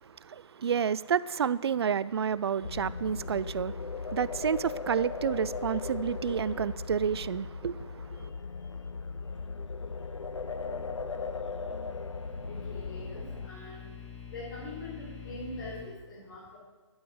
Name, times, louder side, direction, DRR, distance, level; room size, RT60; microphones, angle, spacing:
voice 1, 0.0-8.3, right 7 dB, 60° right, 0.4 m, -30 dB
sound 1, 2.6-13.5, left 4 dB, 90° left, 0.8 m, -38 dB
sound 2, 11.3-15.8, left 7 dB, 70° left, 3.4 m, -47 dB
voice 2, 12.5-13.9 14.3-16.6, left 2 dB, 45° left, 4.3 m, -43 dB
12.5 x 8.9 x 6.3 m
hypercardioid pair, 150°, 15 cm